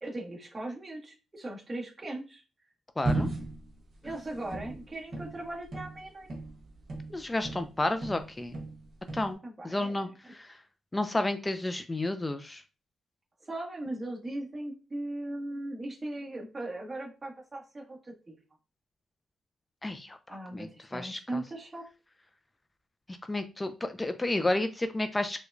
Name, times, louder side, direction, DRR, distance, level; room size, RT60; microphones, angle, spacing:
voice 1, 0.0-2.4 4.0-6.3 9.4-10.3 13.5-18.4 20.3-21.8, right 1 dB, 25° right, -2 dB, 1.2 m, -39 dB
voice 2, 3.0-3.3 7.1-8.5 9.1-9.4 9.6-10.6 10.9-12.6 19.8-21.4 23.1-25.4, left 2 dB, 15° left, 9 dB, 0.3 m, -31 dB
sound 1, 3.0-7.7 8.0-9.3, right 2 dB, 50° right, 1.0 m, -35 dB
4.6 x 2.2 x 2.5 m, 0.32 s
cardioid pair, 105°, 0 cm